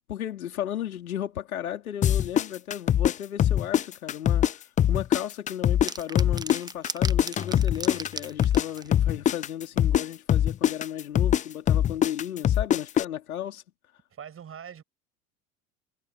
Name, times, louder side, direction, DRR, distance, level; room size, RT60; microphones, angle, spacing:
voice 1, 0.1-4.5 4.9-13.6, left 11 dB, 80° left, 3.9 m, -34 dB
sound 1, 2.0-4.5 4.8-8.7 8.9-13.0, left 10 dB, 20° left, 0.4 m, -22 dB
sound 2, 5.9-8.9, right 3 dB, 10° right, 1.0 m, -36 dB
voice 2, 14.1-14.8, right 8 dB, 30° right, 7.6 m, -42 dB
hypercardioid pair, 80°, 42 cm